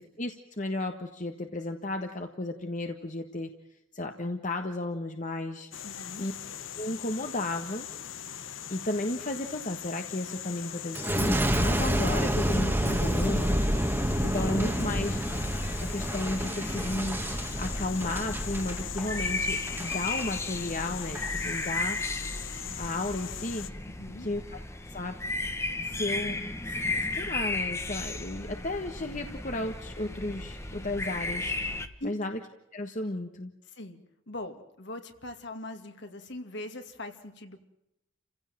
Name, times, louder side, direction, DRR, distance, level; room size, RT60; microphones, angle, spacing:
voice 1, 0.0-3.5 3.9-5.7 6.2-6.3 6.8-7.9 8.7-13.5 14.2-15.2 15.8-17.2 17.6-22.0 22.8-23.7 24.2-24.6 24.9-25.2 25.9-26.5 26.9-32.4 32.7-33.5, left 2 dB, 40° left, 5 dB, 1.4 m, -33 dB
sound 1, 5.7-23.7, left 9 dB, 75° left, 1.1 m, -41 dB
voice 2, 5.8-6.3 23.9-24.3 32.0-32.2 33.7-34.0 34.3-37.6, left 1 dB, 60° left, 5 dB, 2.6 m, -41 dB
Boom, 10.9-20.3 20.8-21.3, right 1 dB, 10° right, 1.6 m, -29 dB
sound 2, 14.3-31.9, left 2 dB, 15° left, 1.2 m, -35 dB
29.5 x 16.5 x 7.6 m, 0.85 s
head